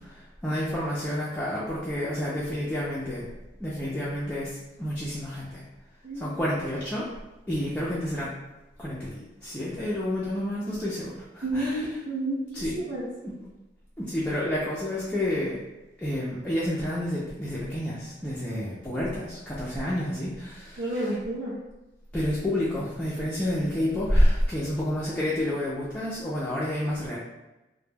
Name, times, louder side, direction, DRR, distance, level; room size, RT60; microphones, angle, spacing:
voice 1, 0.0-3.3 3.6-5.6 6.1-7.1 7.5-8.3 8.8-11.8 12.5-12.8 13.2-13.3 14.0-15.6 16.0-21.1 22.1-27.2, left 1 dB, 5° left, -8 dB, 0.3 m, -29 dB
voice 2, 6.0-6.4 11.4-13.1 20.8-21.5, right 1 dB, 75° right, -9 dB, 0.6 m, -30 dB
2.1 x 2.0 x 3.2 m, 1.0 s
head